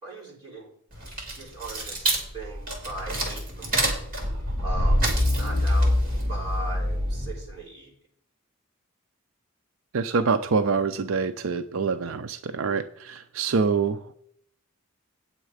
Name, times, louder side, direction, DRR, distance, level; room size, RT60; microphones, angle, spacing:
voice 1, 0.0-0.7 1.3-2.1 2.3-4.1 4.6-5.1 5.3-6.0 6.3-7.9, right 2 dB, 25° right, -6 dB, 3.9 m, -38 dB
sound 1, 0.9-7.5, equal, 40° right, 3.0 m, -25 dB
voice 2, 9.9-14.1, right 5 dB, 70° right, 9 dB, 0.5 m, -25 dB
8.8 x 7.6 x 4.9 m, 0.66 s
head